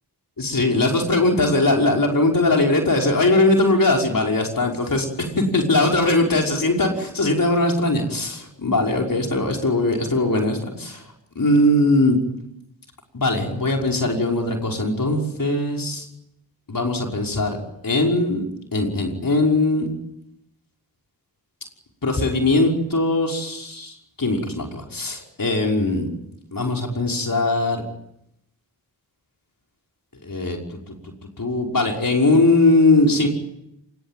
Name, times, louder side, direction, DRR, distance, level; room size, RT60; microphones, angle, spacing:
voice 1, 0.4-11.0 11.4-12.2 13.1-16.1 16.7-17.6 17.8-18.4 18.7-19.9 22.0-26.1 26.5-27.8 30.2-31.0 31.4-33.3, left 2 dB, 50° left, 1 dB, 5.6 m, -20 dB
24.5 x 21.0 x 9.2 m, 0.81 s
cardioid pair, 40°, 43 cm